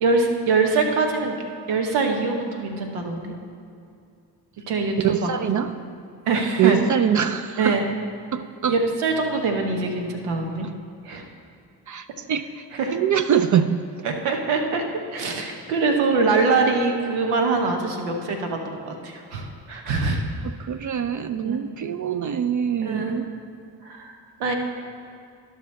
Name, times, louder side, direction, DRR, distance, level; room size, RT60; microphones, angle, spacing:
voice 1, 0.0-1.3 1.7-3.3 4.7-5.3 5.6-5.8 6.3-6.8 7.6-7.9 8.7-10.7 11.0-11.3 12.7-13.0 14.0-14.8 15.1-20.2 21.4-21.6 22.8-23.3 23.8-24.5, right 3 dB, 85° right, 3 dB, 0.9 m, -24 dB
voice 2, 5.0-5.7 6.6-7.8 8.3-8.7 11.9-12.6 12.9-13.8 20.6-23.2, right 8 dB, 40° right, 11 dB, 0.4 m, -23 dB
13.0 x 5.8 x 3.2 m, 2.5 s
hypercardioid pair, 40°, 48 cm